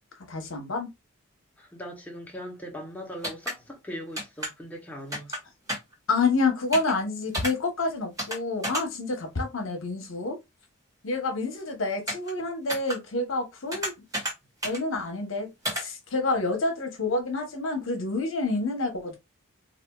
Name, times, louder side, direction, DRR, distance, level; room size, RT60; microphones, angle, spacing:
voice 1, 0.3-0.9 6.1-10.4 11.0-13.9 14.6-19.2, left 3 dB, 65° left, 1.0 m, -28 dB
voice 2, 1.6-5.3, equal, 5° left, 0.8 m, -40 dB
sound 1, 3.2-3.5 4.2-4.5 5.1-5.4 5.7-5.9 6.7-6.9 7.3-7.5 8.2-8.4 8.6-8.8 12.1-12.3 12.7-13.0 13.7-14.3 14.6-14.8 15.6-15.8, equal, 15° right, 1.3 m, -31 dB
4.1 x 2.5 x 2.3 m
head